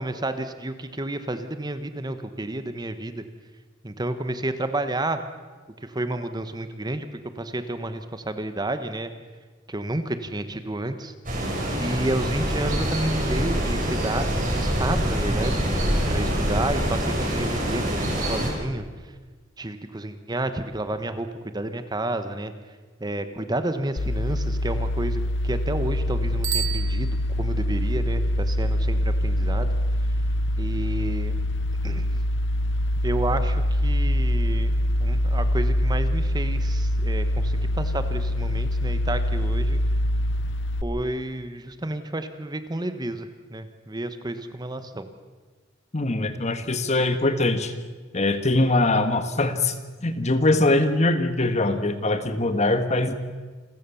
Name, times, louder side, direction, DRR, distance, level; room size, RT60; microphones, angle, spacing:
voice 1, 0.0-3.2 3.8-5.2 5.8-7.1 7.4-9.1 9.7-11.1 11.8-15.6 16.1-18.8 19.6-21.3 21.5-22.5 23.0-29.7 30.6-31.4 31.8-32.2 33.0-39.8 40.8-45.1, right 1 dB, 20° right, 10 dB, 1.1 m, -30 dB
sound 1, 11.2-18.5, equal, 45° right, 6.1 m, -25 dB
sound 2, 24.0-40.8, left 1 dB, 60° left, 0.7 m, -24 dB
Bicycle bell, 26.4-27.7, right 10 dB, 70° right, 2.6 m, -31 dB
voice 2, 45.9-47.7 48.1-49.8 50.0-53.1, left 2 dB, 35° left, 9 dB, 1.5 m, -22 dB
28.5 x 15.0 x 7.0 m, 1.4 s
head